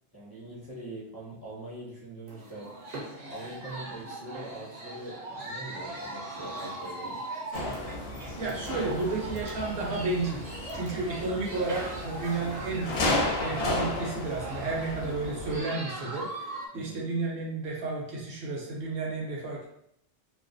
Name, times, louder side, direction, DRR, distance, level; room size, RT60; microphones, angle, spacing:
voice 1, 0.1-2.8 3.3-7.2 16.7-17.0, right 1 dB, 25° left, -9 dB, 0.6 m, -42 dB
sound 1, 2.3-16.7, right 2 dB, 50° right, 0.5 m, -40 dB
sound 2, 7.5-15.6, left 2 dB, 65° left, 0.7 m, -33 dB
voice 2, 8.4-10.4 10.7-12.9 13.4-16.3 16.7-19.7, right 3 dB, 70° right, -2 dB, 0.8 m, -32 dB
2.3 x 2.1 x 2.5 m, 0.73 s
omnidirectional pair, 1.2 m